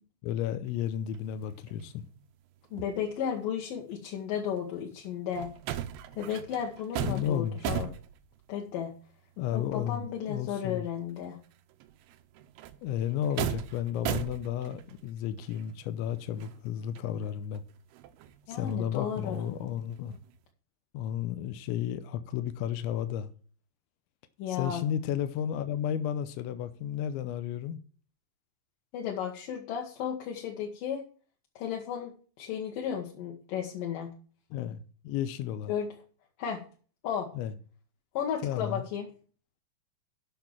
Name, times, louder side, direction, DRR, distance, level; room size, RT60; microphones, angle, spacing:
voice 1, 0.2-2.0 7.1-7.9 9.4-10.9 12.8-17.6 18.5-20.2 20.9-23.3 24.5-27.8 34.5-35.7 37.4-37.5 38.4-38.8, left 10 dB, 85° left, 3.1 m, -33 dB
sound 1, 0.7-0.9 1.1-3.4 3.8-10.4 10.7-10.8 11.1-15.1 15.4-18.8 19.1-20.4, right 10 dB, 80° right, 2.4 m, -39 dB
voice 2, 2.7-5.5 6.2-7.9 8.5-8.9 9.5-11.4 18.5-19.4 24.4-24.8 28.9-31.0 31.6-32.1 32.4-34.1 35.7-35.9 36.4-36.6 37.0-37.3 38.1-39.1, left 8 dB, 60° left, 2.6 m, -34 dB
9.1 x 6.0 x 7.2 m
omnidirectional pair, 5.2 m